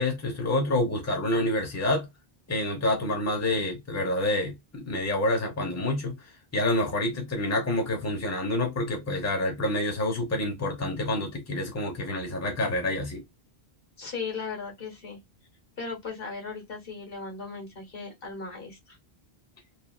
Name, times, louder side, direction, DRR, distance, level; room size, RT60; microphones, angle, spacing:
voice 1, 0.0-2.1 2.5-6.2 6.5-13.2, left 1 dB, 15° left, 0.8 m, -27 dB
voice 2, 14.0-15.2 15.8-19.0, left 4 dB, 65° left, 1.5 m, -37 dB
3.1 x 2.5 x 2.3 m
omnidirectional pair, 1.0 m